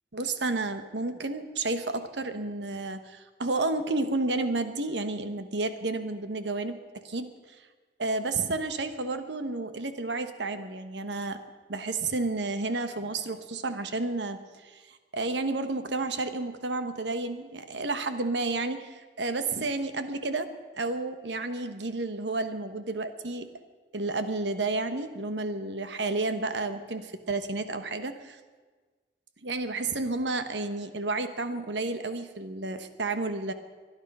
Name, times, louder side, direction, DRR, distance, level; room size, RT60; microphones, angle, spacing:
voice 1, 0.1-7.3 8.0-11.4 11.7-23.5 23.9-28.4 29.4-33.5, right 3 dB, 80° right, 9 dB, 1.1 m, -31 dB
23.0 x 11.0 x 5.5 m, 1.4 s
head